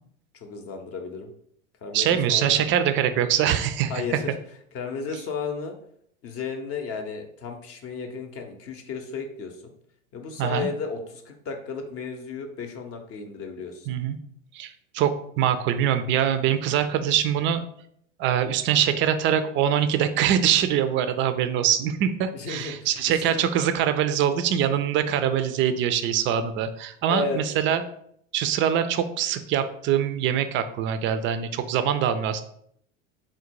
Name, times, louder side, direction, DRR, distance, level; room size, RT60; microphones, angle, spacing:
voice 1, 0.3-1.3 1.8-2.7 3.9-4.3 4.7-5.7 6.2-9.7 10.1-13.9 22.3-23.4 27.1-27.4, left 5 dB, 35° left, 4 dB, 0.7 m, -33 dB
voice 2, 1.9-3.9 10.4-10.7 13.9-14.2 14.5-17.6 18.2-27.8 28.3-32.4, right 9 dB, 30° right, 10 dB, 0.4 m, -23 dB
3.9 x 2.2 x 4.5 m, 0.68 s
hypercardioid pair, 95°, 39 cm